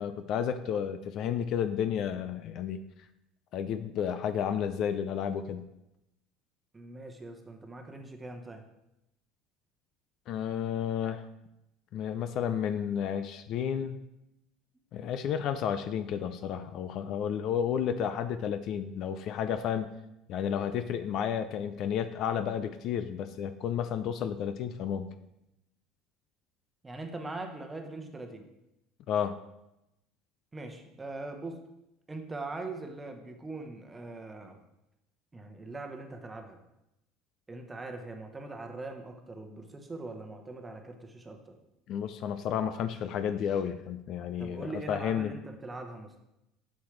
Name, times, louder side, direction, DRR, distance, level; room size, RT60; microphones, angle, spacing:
voice 1, 0.0-2.8 3.5-5.7 10.3-11.3 11.9-14.0 14.9-19.9 20.3-25.1 29.1-29.4 41.9-45.3, left 8 dB, 55° left, 10 dB, 0.5 m, -32 dB
voice 2, 6.7-8.7 14.7-14.8 26.8-28.5 30.5-31.6 32.1-34.6 35.3-36.6 37.5-41.6 44.4-46.1, right 2 dB, 15° right, 4 dB, 1.0 m, -41 dB
8.2 x 6.3 x 3.2 m, 0.88 s
supercardioid pair, 110°, 0 cm